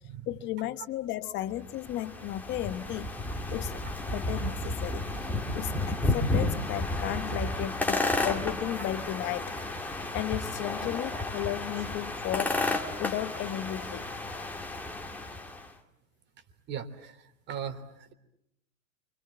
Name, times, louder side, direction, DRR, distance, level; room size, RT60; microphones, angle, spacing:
voice 1, 0.3-3.1 3.5-3.8 4.1-5.0 5.5-9.6 9.8-12.6 13.0-14.1, left 13 dB, 25° left, 1.1 m, -34 dB
sound 1, 1.6-15.7, left 2 dB, 5° left, 2.3 m, -32 dB
voice 2, 16.7-18.1, right 8 dB, 25° right, 3.2 m, -39 dB
30.0 x 26.0 x 7.5 m
hypercardioid pair, 145°, 41 cm